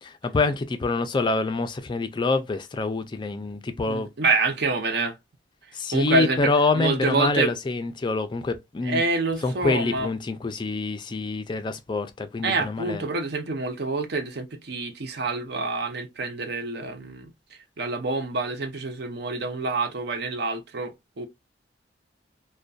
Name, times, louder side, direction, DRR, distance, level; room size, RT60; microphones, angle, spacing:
voice 1, 0.0-4.1 5.7-9.0 9.4-13.0, left 3 dB, 25° left, 0.3 m, -26 dB
voice 2, 3.9-5.2 5.9-6.5 6.8-7.5 8.8-10.1 12.4-21.3, right 3 dB, 60° right, 0.6 m, -27 dB
2.5 x 2.2 x 2.2 m
head